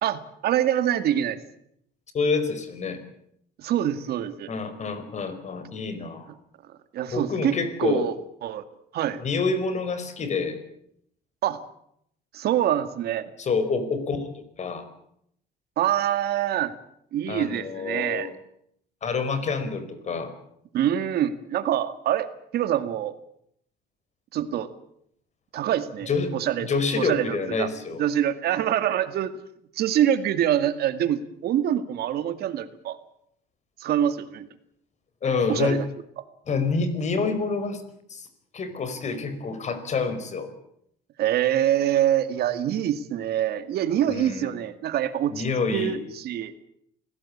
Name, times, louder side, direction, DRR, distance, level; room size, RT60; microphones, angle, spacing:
voice 1, 0.0-1.4 3.6-4.5 6.9-8.6 8.9-9.2 11.4-11.6 12.3-13.3 15.8-16.7 17.1-18.3 20.7-22.3 22.5-23.1 24.3-24.7 25.5-26.7 27.0-27.7 28.0-29.3 29.8-33.0 33.8-34.5 35.5-35.9 41.2-45.4 45.7-46.5, right 11 dB, 70° right, 11 dB, 2.1 m, -25 dB
voice 2, 2.1-3.0 4.5-6.3 7.1-8.1 9.2-10.6 13.4-14.9 17.3-18.3 19.0-20.3 26.1-26.3 26.6-28.0 35.2-35.8 36.5-37.8 38.1-38.3 38.5-40.5 44.1-44.5 45.3-46.0, left 4 dB, 45° left, 11 dB, 5.0 m, -27 dB
27.0 x 17.5 x 8.7 m, 0.73 s
cardioid pair, 110°, 17 cm